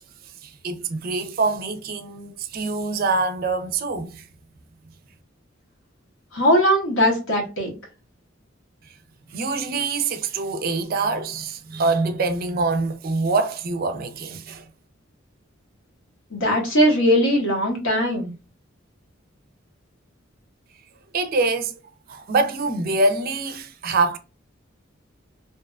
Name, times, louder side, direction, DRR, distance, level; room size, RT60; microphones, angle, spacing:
voice 1, 0.4-4.2 9.3-14.6 21.1-21.7 22.1-24.2, right 3 dB, 50° right, 0.4 m, -24 dB
voice 2, 6.3-7.7 16.3-18.3, equal, 80° left, 0.8 m, -20 dB
2.6 x 2.2 x 2.3 m
head